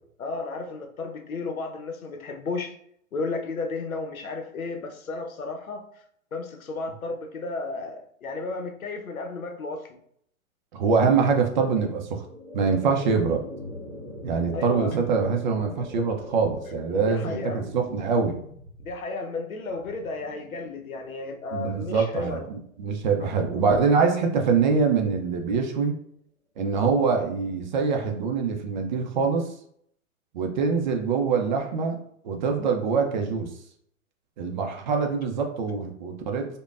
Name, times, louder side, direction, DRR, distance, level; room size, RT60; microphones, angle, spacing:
voice 1, 0.2-2.7 3.1-5.9 6.3-10.0 14.5-15.0 16.9-17.6 18.8-22.5, left 3 dB, 75° left, 0.8 m, -33 dB
voice 2, 10.7-12.2 12.5-13.4 14.2-18.4 21.5-25.9 26.6-29.5 30.3-32.0 32.2-33.5 34.4-36.5, right 5 dB, 35° right, 0.5 m, -24 dB
sound 1, 11.9-23.0, left 1 dB, 10° right, 1.2 m, -43 dB
5.0 x 2.2 x 2.4 m
figure-of-eight pair, 115°, 42 cm